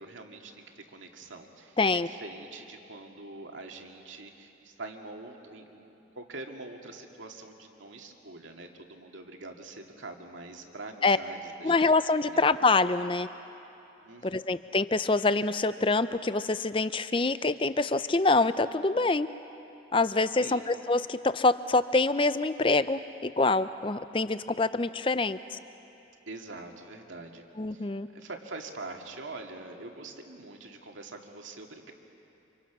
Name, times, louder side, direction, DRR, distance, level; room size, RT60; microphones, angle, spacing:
voice 1, 0.0-11.9 12.3-12.4 14.0-14.5 20.4-20.7 26.3-31.9, right 2 dB, 85° right, 2 dB, 2.3 m, -44 dB
voice 2, 1.8-2.1 11.0-11.2 11.6-13.3 14.2-19.3 19.9-25.6 27.6-28.1, left 3 dB, 25° left, 13 dB, 0.6 m, -25 dB
29.0 x 26.5 x 6.2 m, 2.9 s
head